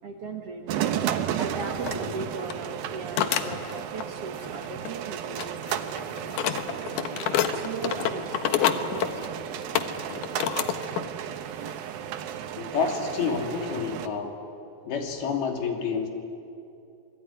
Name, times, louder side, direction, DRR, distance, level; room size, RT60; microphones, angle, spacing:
voice 1, 0.0-6.9 7.4-9.6 14.0-14.2 14.8-15.3, right 4 dB, 50° right, 3 dB, 2.0 m, -39 dB
sound 1, 0.7-14.1, right 10 dB, 75° right, 2.9 m, -33 dB
sound 2, 1.2-11.2, right 2 dB, 5° right, 3.3 m, -49 dB
sound 3, 1.3-1.5 1.9-2.0 2.4-2.6 3.2-4.1 4.4-5.1 5.4-11.1 11.5-11.7 12.4-12.5 13.1-13.4, left 9 dB, 65° left, 2.4 m, -28 dB
voice 2, 12.6-14.3 14.9-16.1, left 5 dB, 85° left, 3 dB, 4.8 m, -28 dB
27.0 x 21.5 x 9.9 m, 2.7 s
omnidirectional pair, 4.3 m